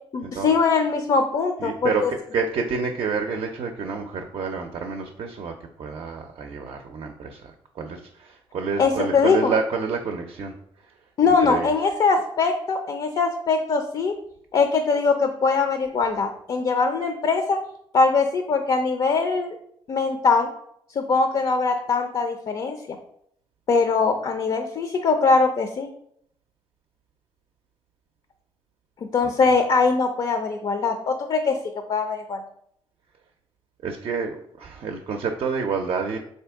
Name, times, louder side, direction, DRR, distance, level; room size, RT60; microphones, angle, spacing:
voice 1, 0.1-2.1 8.8-9.5 11.2-14.1 14.5-17.6 17.9-19.6 19.9-20.5 21.0-22.8 23.7-25.9 29.1-31.6 31.9-32.4, left 4 dB, 50° left, 6 dB, 0.4 m, -22 dB
voice 2, 1.6-10.5 11.4-11.7 29.2-29.3 33.8-36.2, right 5 dB, 60° right, 4 dB, 0.5 m, -28 dB
3.6 x 2.7 x 3.4 m, 0.70 s
supercardioid pair, 65°, 10 cm